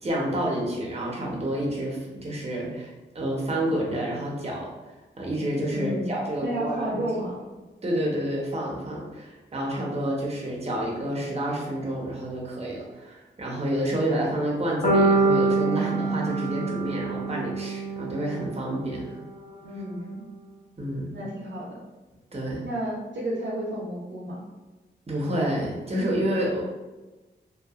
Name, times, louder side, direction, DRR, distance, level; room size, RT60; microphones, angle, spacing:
voice 1, 0.0-4.7 5.2-7.1 7.8-19.1 20.8-21.1 22.3-22.6 25.1-26.6, right 1 dB, 35° right, -3 dB, 0.8 m, -29 dB
voice 2, 5.7-7.4 19.6-20.2 21.1-21.8 22.6-24.4, right 1 dB, 75° right, -4 dB, 0.6 m, -32 dB
sound 1, 14.8-18.9, right 3 dB, 30° left, 0.8 m, -25 dB
2.7 x 2.3 x 2.3 m, 1.2 s
cardioid pair, 55°, 19 cm